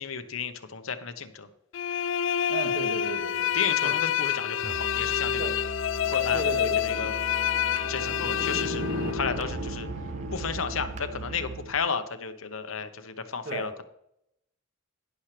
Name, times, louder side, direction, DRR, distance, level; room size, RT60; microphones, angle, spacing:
voice 1, 0.0-1.5 3.5-5.5 6.0-6.5 6.8-7.1 7.9-8.8 9.1-9.9 10.3-13.8, left 6 dB, 85° left, 9 dB, 1.1 m, -33 dB
sound 1, 1.7-9.5, left 9 dB, 65° left, 0.4 m, -28 dB
voice 2, 2.5-3.6 3.8-3.9 5.4-5.5 6.3-6.8 13.5-13.7, right 3 dB, 55° right, 4 dB, 2.0 m, -34 dB
Musical instrument, 4.6-11.7, right 5 dB, 35° right, 0.3 m, -40 dB
sound 2, 6.3-11.7, left 1 dB, 90° right, 1.4 m, -37 dB
12.0 x 10.5 x 3.3 m, 0.77 s
head